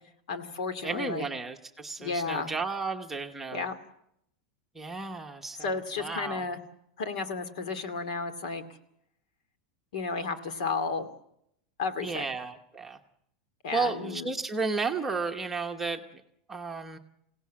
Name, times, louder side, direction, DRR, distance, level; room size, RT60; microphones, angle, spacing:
voice 1, 0.3-1.2 2.0-2.5 3.5-3.8 5.6-6.6 7.0-8.6 9.9-11.1 11.8-12.3 13.6-14.3, left 4 dB, 70° left, 10 dB, 2.6 m, -32 dB
voice 2, 0.8-3.7 4.7-6.4 12.0-13.0 13.7-16.0 16.5-17.0, right 4 dB, 5° right, 2 dB, 1.0 m, -33 dB
27.5 x 17.5 x 7.5 m, 0.77 s
supercardioid pair, 175°, 4 cm